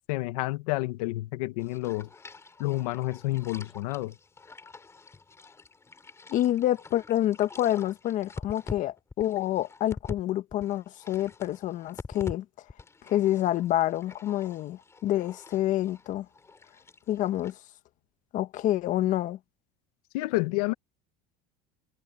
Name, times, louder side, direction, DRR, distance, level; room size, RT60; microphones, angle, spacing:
voice 1, 0.1-2.1 2.6-4.1 20.1-20.7, left 20 dB, 85° left, 1.7 m, -29 dB
sound 1, 1.6-10.2 10.5-12.4 12.7-17.5, left 4 dB, 15° left, 6.4 m, -45 dB
voice 2, 6.3-12.4 13.1-16.3 17.1-17.6 18.3-19.4, left 13 dB, 45° left, 1.5 m, -27 dB
cardioid pair, 150°, 19 cm